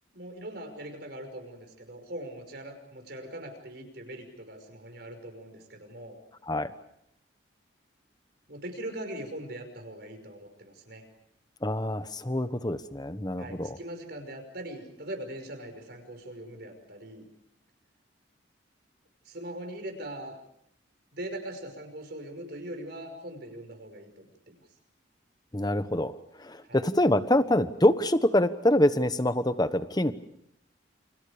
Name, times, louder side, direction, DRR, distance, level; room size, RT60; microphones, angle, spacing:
voice 1, 0.1-6.2 8.5-11.1 13.4-17.3 19.2-20.4 21.1-24.6 26.6-26.9, right 1 dB, 55° right, 5 dB, 5.7 m, -41 dB
voice 2, 11.6-13.8 25.5-30.1, left 1 dB, 20° left, 11 dB, 1.2 m, -25 dB
29.5 x 28.5 x 5.1 m, 0.74 s
head